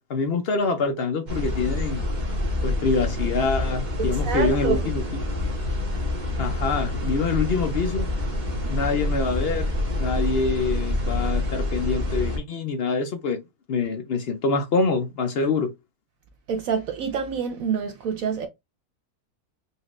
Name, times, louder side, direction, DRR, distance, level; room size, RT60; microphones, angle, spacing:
voice 1, 0.1-2.0 2.6-5.0 6.4-8.1 8.7-9.7 10.0-13.4 13.7-15.7, left 4 dB, 60° left, 0.6 m, -25 dB
sound 1, 1.3-12.4, left 1 dB, 30° right, 1.1 m, -27 dB
voice 2, 4.0-4.9 8.6-8.8 16.5-18.5, right 6 dB, 70° right, 1.0 m, -27 dB
4.1 x 2.5 x 3.1 m
omnidirectional pair, 1.6 m